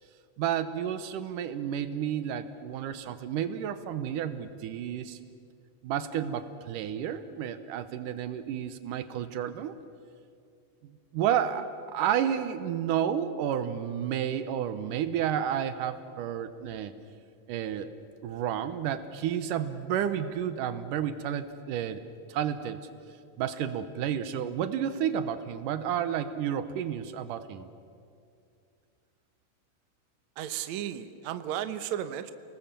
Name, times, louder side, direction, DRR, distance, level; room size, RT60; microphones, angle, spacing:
voice 1, 0.4-5.2 5.8-9.7 11.1-16.9 17.5-17.9 18.2-22.0 22.3-22.8 23.4-27.7, right 9 dB, 85° right, 11 dB, 2.5 m, -31 dB
voice 2, 30.4-32.3, right 11 dB, 70° right, 10 dB, 2.1 m, -34 dB
30.0 x 19.5 x 7.5 m, 2.4 s
omnidirectional pair, 3.7 m